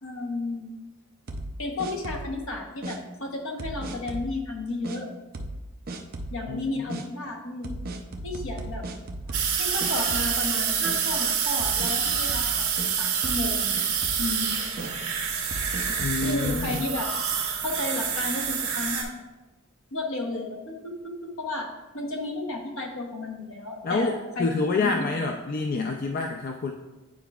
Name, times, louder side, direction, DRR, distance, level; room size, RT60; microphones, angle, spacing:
voice 1, 0.0-0.7 1.6-5.1 6.3-7.8 8.2-8.8 9.6-12.7 13.0-13.8 14.2-14.6 16.2-17.1 17.6-19.2 19.9-24.5 24.7-25.0, left 2 dB, 65° left, 2 dB, 1.0 m, -33 dB
sound 1, 1.3-2.4 2.8-3.0 3.6-4.3 4.8-5.0 5.3-5.6 5.9-6.4 6.9-7.0 7.6-9.6 9.8-10.5 10.8-11.0 11.6-12.9 13.2-13.5 13.8-14.3 14.8-14.9 15.5-16.8, right 1 dB, 45° right, 0.5 m, -35 dB
sound 2, 9.3-19.0, right 7 dB, 80° right, 1.3 m, -27 dB
voice 2, 16.0-16.7 23.8-26.7, left 3 dB, 45° left, 2 dB, 0.4 m, -27 dB
9.1 x 4.6 x 2.3 m, 1.1 s
head